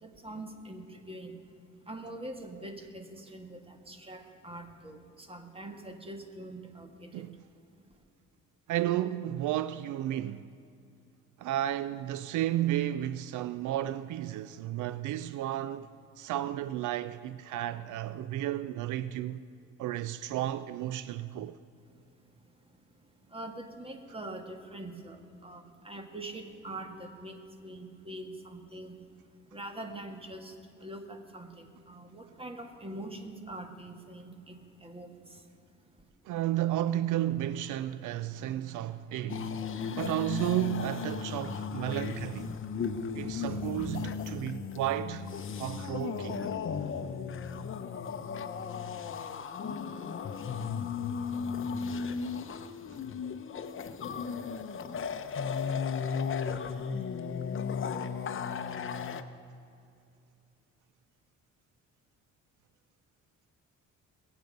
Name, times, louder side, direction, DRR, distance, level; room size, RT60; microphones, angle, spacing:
voice 1, 0.2-1.3 1.9-5.0 5.3-7.1 23.3-25.2 25.4-27.4 27.6-28.9 29.5-30.5 30.8-34.5 34.8-35.1, right 1 dB, 20° right, 1.7 m, -43 dB
voice 2, 8.7-10.5 11.4-15.9 16.2-19.4 19.8-21.6 36.3-39.6 40.0-42.6 43.1-45.3 45.6-46.5, right 13 dB, 80° right, 0.4 m, -32 dB
sound 1, 39.3-59.2, left 6 dB, 45° left, 0.8 m, -35 dB
21.0 x 8.3 x 5.3 m
cardioid pair, 90°, 30 cm